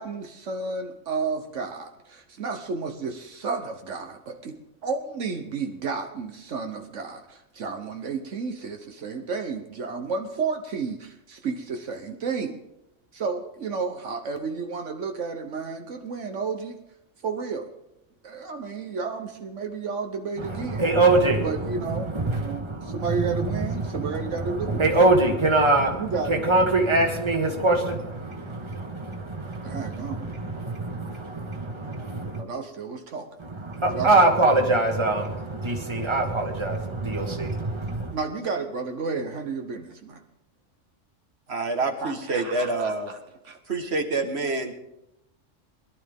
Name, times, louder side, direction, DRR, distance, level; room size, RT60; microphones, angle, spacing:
voice 1, 0.0-12.6 13.1-16.7 17.2-17.7 18.2-20.8 21.4-22.1 22.4-24.8 26.0-26.3 29.6-30.3 32.4-33.3 33.8-34.1 38.1-40.2 42.0-43.2 43.4-43.6, right 4 dB, 75° right, 5 dB, 1.4 m, -32 dB
voice 2, 20.4-32.4 33.4-38.2, right 2 dB, 25° right, 3 dB, 1.7 m, -24 dB
voice 3, 41.5-43.1 43.7-44.7, right 3 dB, 60° right, 4 dB, 1.7 m, -27 dB
21.5 x 12.0 x 3.6 m, 0.87 s
omnidirectional pair, 1.3 m